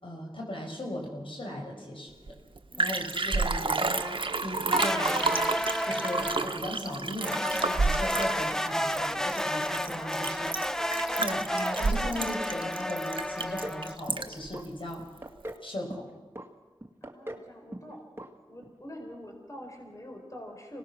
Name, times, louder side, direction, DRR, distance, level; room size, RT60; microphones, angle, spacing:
voice 1, 0.0-2.1 2.8-5.5 5.8-10.7 11.1-15.0 15.6-16.1, left 1 dB, 65° left, 0 dB, 5.3 m, -37 dB
Liquid, 2.3-2.4 2.6-14.5 14.9-15.0, right 3 dB, 60° right, 1.1 m, -30 dB
sound 1, 4.7-6.6 7.2-14.0, equal, 5° left, 0.8 m, -31 dB
sound 2, 13.4-13.8 14.1-14.7 15.0-15.6 15.9-16.5 16.8-17.5 17.7-17.9 18.2-18.3 18.6-18.7, right 1 dB, 25° right, 2.1 m, -40 dB
voice 2, 17.0-18.1 18.5-20.8, equal, 35° left, 2 dB, 4.5 m, -45 dB
25.5 x 19.0 x 6.1 m, 1.3 s
cardioid pair, 45°, 10 cm